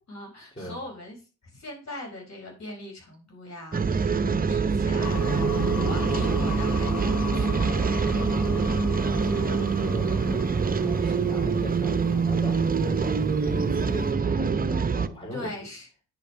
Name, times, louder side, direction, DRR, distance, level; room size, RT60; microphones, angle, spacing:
voice 1, 0.1-1.2 1.4-4.2 4.5-5.2 5.8-7.7 15.3-15.9, left 1 dB, 45° left, 1 dB, 4.9 m, -40 dB
sound 1, 3.7-15.1, right 5 dB, 25° right, 0.8 m, -25 dB
voice 2, 4.1-4.6 8.1-10.6 10.8-15.5, equal, 15° left, 1 dB, 3.7 m, -39 dB
sound 2, 5.0-12.6, left 5 dB, 75° left, 1.5 m, -36 dB
9.7 x 5.2 x 4.8 m, 0.33 s
supercardioid pair, 55°, 36 cm